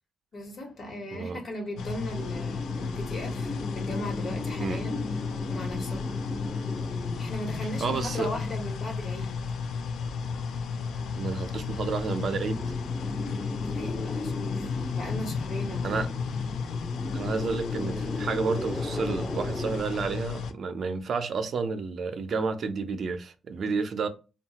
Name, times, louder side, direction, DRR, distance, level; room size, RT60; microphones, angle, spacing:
voice 1, 0.3-5.1 5.5-6.2 7.2-9.4 13.1-13.4 13.7-14.7 14.9-16.0, left 1 dB, 60° left, 1.1 m, -38 dB
sound 1, 1.8-20.5, left 5 dB, 80° left, 0.3 m, -33 dB
sound 2, 2.1-9.4 9.7-9.8 10.1-10.6 11.2-19.8, left 2 dB, 15° left, 0.5 m, -37 dB
voice 2, 7.8-8.3 11.2-12.6 15.8-16.1 17.1-24.1, right 4 dB, 60° right, 0.4 m, -30 dB
2.7 x 2.3 x 2.8 m
cardioid pair, 70°, 0 cm